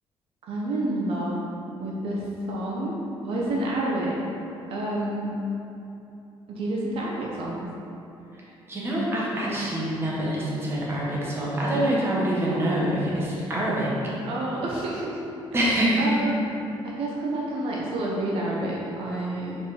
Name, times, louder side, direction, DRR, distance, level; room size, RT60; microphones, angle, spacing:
voice 1, 0.5-1.5 1.8-3.0 3.2-4.2 4.7-5.3 6.5-7.7 11.7-13.0 14.2-15.2 15.6-15.7 16.0-16.4 16.8-19.6, right 1 dB, 70° right, -4 dB, 1.0 m, -29 dB
voice 2, 8.7-13.9 15.5-16.2, right 1 dB, 25° right, -6 dB, 1.4 m, -25 dB
4.9 x 4.7 x 5.0 m, 2.8 s
cardioid pair, 150°, 10 cm